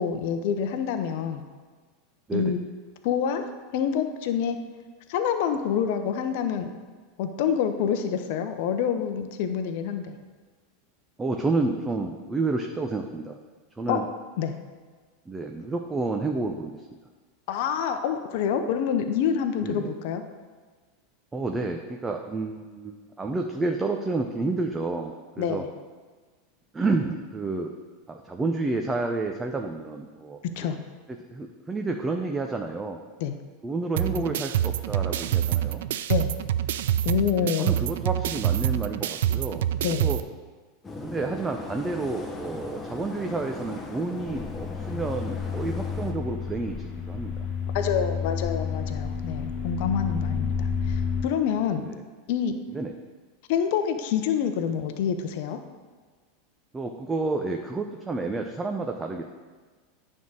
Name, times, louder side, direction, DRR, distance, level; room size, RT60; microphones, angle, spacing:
voice 1, 0.0-1.4 2.3-2.6 3.0-3.5 3.7-4.6 5.1-6.7 7.2-10.2 13.9-14.0 14.4-14.5 17.5-20.2 25.4-25.7 30.6-30.8 33.2-33.3 34.2-34.3 36.1-36.3 37.0-37.8 39.8-40.1 47.7-51.8 52.3-52.5 53.5-55.6, left 8 dB, 60° left, 7 dB, 0.7 m, -27 dB
voice 2, 11.2-13.4 13.8-14.1 15.3-16.9 19.6-19.9 21.3-25.6 26.7-27.7 28.1-30.7 31.3-33.0 33.6-35.9 37.4-40.2 41.0-47.3 51.8-52.0 52.7-52.9 56.7-59.2, right 3 dB, 15° right, 3 dB, 0.6 m, -30 dB
sound 1, 34.0-40.2, right 11 dB, 70° right, 0.3 m, -26 dB
sound 2, 40.8-46.1, left 2 dB, 15° left, 1.1 m, -38 dB
sound 3, 44.2-51.2, left 6 dB, 45° left, 1.5 m, -30 dB
9.3 x 3.7 x 6.2 m, 1.4 s
hypercardioid pair, 90°, 0 cm